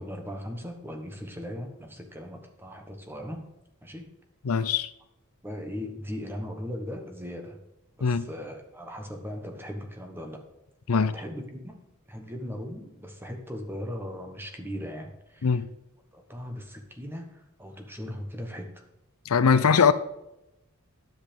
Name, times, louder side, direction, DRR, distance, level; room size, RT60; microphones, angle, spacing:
voice 1, 0.0-3.5 3.8-4.1 5.4-7.6 8.0-10.4 10.9-11.8 12.1-15.6 16.1-18.8 19.6-19.9, equal, 10° right, 4 dB, 1.2 m, -38 dB
voice 2, 4.4-4.9 8.0-8.3 10.9-11.1 15.4-15.7 19.2-19.9, left 6 dB, 90° left, 15 dB, 0.6 m, -21 dB
9.8 x 7.9 x 5.2 m, 0.90 s
head